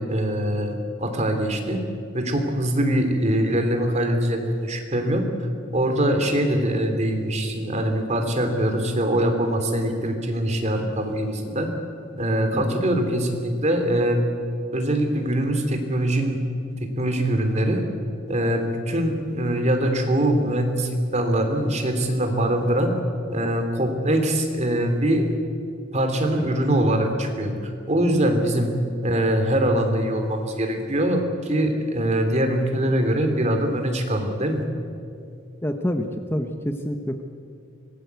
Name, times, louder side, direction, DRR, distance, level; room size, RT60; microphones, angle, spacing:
voice 1, 0.0-1.8 2.1-5.2 5.7-11.7 12.2-14.2 14.7-16.4 16.8-17.8 18.3-22.9 23.3-25.3 25.9-27.5 27.9-28.7 29.0-34.6, right 1 dB, 35° right, 5 dB, 3.0 m, -23 dB
voice 2, 35.6-37.2, equal, 10° left, 5 dB, 1.0 m, -27 dB
25.0 x 19.0 x 8.2 m, 2.4 s
head